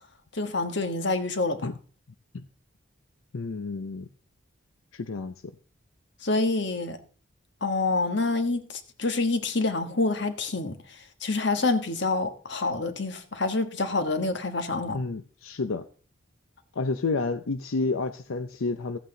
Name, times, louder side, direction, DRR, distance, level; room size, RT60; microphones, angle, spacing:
voice 1, 0.3-1.7 6.2-7.0 7.6-15.0, left 3 dB, 60° left, 1.4 m, -27 dB
voice 2, 3.3-4.1 4.9-5.3 14.9-15.8 16.7-19.0, left 3 dB, 90° left, 0.6 m, -30 dB
15.0 x 8.4 x 3.8 m
head